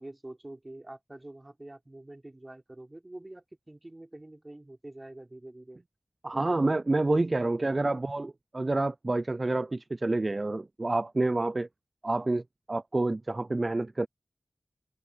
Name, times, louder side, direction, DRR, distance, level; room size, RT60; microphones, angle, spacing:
voice 1, 0.0-5.8 6.3-7.4, right 1 dB, 30° right, 4.3 m, -46 dB
voice 2, 6.2-11.7 12.0-12.4 12.7-14.1, right 2 dB, 45° right, 0.4 m, -28 dB
wide cardioid pair, 50°, 0 cm